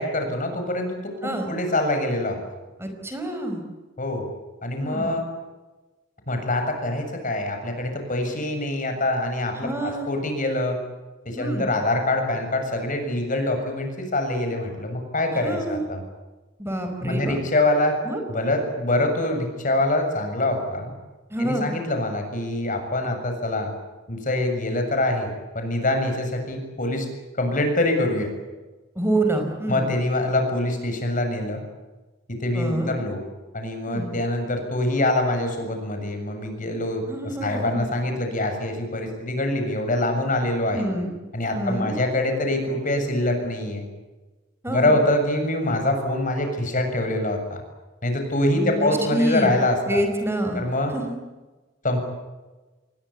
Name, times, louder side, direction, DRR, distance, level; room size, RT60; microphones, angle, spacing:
voice 1, 0.0-2.4 4.0-4.3 4.6-5.2 6.3-10.8 11.3-16.0 17.0-18.0 18.3-20.9 21.4-23.7 24.1-27.1 27.3-28.3 29.7-31.6 32.3-33.2 33.5-40.9 41.3-43.9 44.7-47.6 48.0-50.0 50.5-50.9 51.8-52.0, left 1 dB, 45° left, 5 dB, 7.1 m, -25 dB
voice 2, 2.8-3.6 4.8-5.1 9.6-10.1 11.4-11.7 15.4-15.8 16.6-17.4 18.0-18.2 21.3-21.7 28.9-29.9 32.5-32.9 33.9-34.1 37.1-37.8 40.7-41.1 41.5-41.9 44.6-44.9 48.6-49.6 49.9-50.6 50.9-51.2, right 1 dB, 15° right, 4 dB, 4.9 m, -27 dB
28.0 x 22.0 x 8.6 m, 1.2 s
head